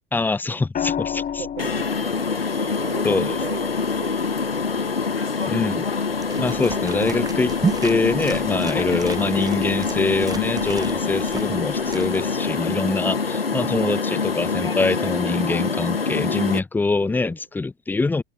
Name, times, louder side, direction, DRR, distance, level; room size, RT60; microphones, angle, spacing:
voice 1, 0.1-1.5 3.0-3.3 5.5-5.8 6.4-7.5 7.8-18.2, left 3 dB, 5° left, 0.5 m, -24 dB
sound 1, 0.7-4.9 6.6-7.0, left 8 dB, 30° left, 4.9 m, -32 dB
voice 2, 1.1-1.7 2.6-5.5 6.5-6.9 13.3-13.5 17.0-17.3, right 8 dB, 75° right, 4.1 m, -38 dB
sound 2, 1.6-16.6, left 5 dB, 85° left, 1.5 m, -25 dB
sound 3, 6.2-12.5, right 4 dB, 15° right, 1.3 m, -33 dB
figure-of-eight pair, 75°, 29 cm